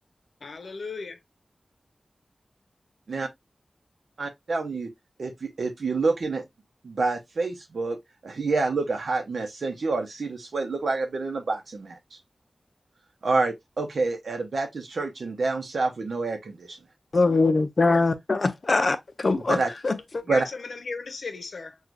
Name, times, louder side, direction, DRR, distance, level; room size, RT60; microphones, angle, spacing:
voice 1, 0.4-1.2 20.2-21.8, left 4 dB, 85° left, 0.7 m, -36 dB
voice 2, 4.2-4.9 5.2-6.4 6.8-8.0 8.2-12.2 13.2-16.8 19.5-19.7 20.3-20.5, right 3 dB, 80° right, 0.7 m, -27 dB
voice 3, 17.1-20.2, left 3 dB, 55° left, 0.6 m, -23 dB
6.1 x 2.4 x 2.5 m
wide cardioid pair, 90°, 0 cm